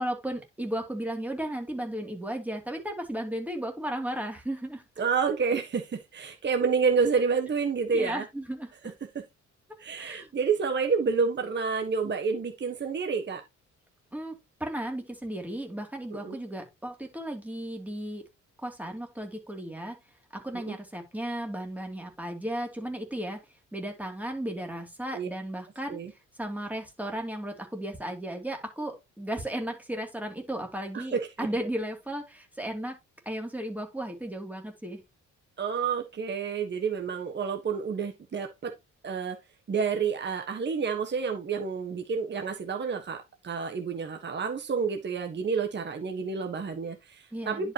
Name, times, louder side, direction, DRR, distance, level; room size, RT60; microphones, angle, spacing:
voice 1, 0.0-4.8 7.9-8.7 9.7-10.3 14.1-18.3 18.6-20.0 20.3-23.4 23.7-26.0 26.4-32.9 33.3-35.0 47.3-47.7, right 1 dB, 5° right, 2.8 m, -35 dB
voice 2, 5.0-8.2 9.1-9.2 9.8-13.4 16.1-16.4 20.7-20.8 25.1-25.3 25.9-26.1 30.9-31.5 35.6-38.7 39.0-39.4 39.7-47.7, right 5 dB, 35° right, 1.4 m, -29 dB
10.5 x 5.3 x 2.9 m
cardioid pair, 90°, 30 cm